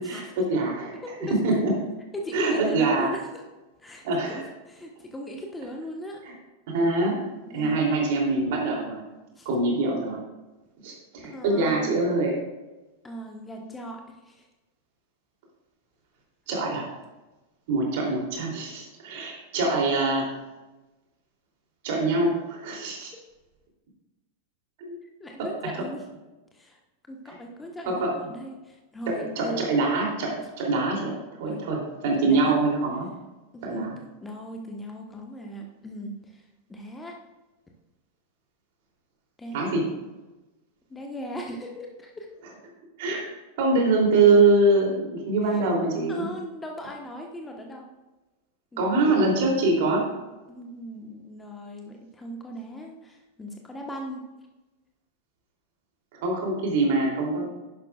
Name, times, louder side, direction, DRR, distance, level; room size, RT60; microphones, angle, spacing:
voice 1, 0.0-0.9 1.3-1.7 2.3-3.1 4.0-4.4 6.7-7.2 7.5-9.0 9.4-10.2 10.8-12.3 16.5-16.9 17.7-20.3 21.8-23.1 24.8-24.9 27.9-28.1 29.1-31.1 31.4-33.1 33.6-33.9 39.5-39.8 43.0-43.2 43.6-46.3 48.8-50.1 56.2-57.5, right 3 dB, 50° right, -1 dB, 3.0 m, -24 dB
voice 2, 1.0-1.3 2.1-3.4 3.8-4.0 4.3-6.3 7.5-7.8 9.3-9.5 11.2-11.9 13.0-14.5 25.0-26.0 26.5-26.8 27.1-29.6 30.4-30.5 31.5-31.6 32.1-32.6 33.5-37.2 39.4-39.8 40.9-42.3 45.5-45.7 46.1-47.9 48.7-49.0 50.5-54.2, equal, 10° left, 1 dB, 1.3 m, -38 dB
11.0 x 11.0 x 2.4 m, 1.1 s
figure-of-eight pair, 90°, 0 cm